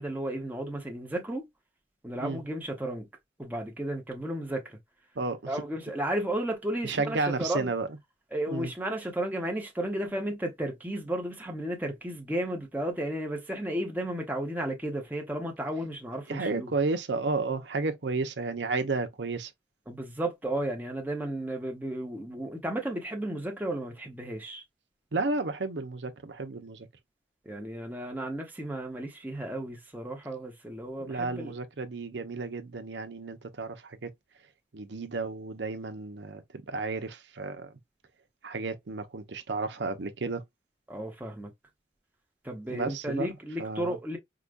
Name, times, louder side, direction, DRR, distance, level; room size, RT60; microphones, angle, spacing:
voice 1, 0.0-1.5 2.0-3.1 3.4-4.8 5.5-7.7 8.3-16.7 19.9-24.6 27.4-31.5 40.9-41.5 42.4-44.2, right 1 dB, 10° right, 0.9 m, -33 dB
voice 2, 5.2-5.5 6.8-7.9 8.5-8.7 16.3-19.5 25.1-26.9 31.0-34.1 34.7-37.7 38.4-40.4 42.7-43.3 43.6-44.0, right 3 dB, 80° right, 0.7 m, -32 dB
4.9 x 2.3 x 2.5 m
head